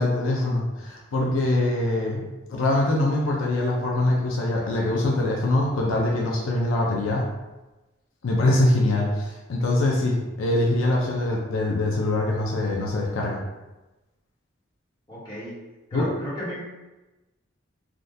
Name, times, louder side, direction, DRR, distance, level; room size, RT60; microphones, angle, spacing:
voice 1, 0.0-7.2 8.2-13.4 15.9-16.1, left 2 dB, 80° left, -2 dB, 0.5 m, -23 dB
voice 2, 15.1-15.6 15.9-16.6, equal, 20° left, -9 dB, 1.1 m, -33 dB
3.6 x 2.3 x 2.6 m, 1.1 s
head